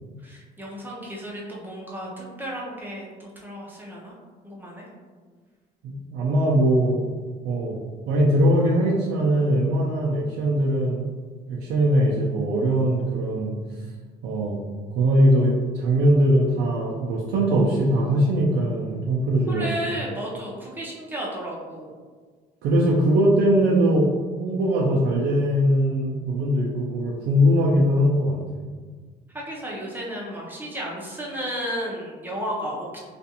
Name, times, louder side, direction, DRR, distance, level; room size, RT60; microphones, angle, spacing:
voice 1, 0.2-4.1 4.4-4.9 19.5-22.0 29.3-33.0, equal, 10° right, -4 dB, 0.6 m, -33 dB
voice 2, 5.8-7.0 7.4-7.8 8.1-11.0 11.5-13.5 14.2-14.6 14.9-19.8 22.6-24.1 24.4-28.4, equal, 85° right, -4 dB, 0.4 m, -21 dB
2.4 x 2.4 x 2.7 m, 1.5 s
cardioid pair, 110°, 17 cm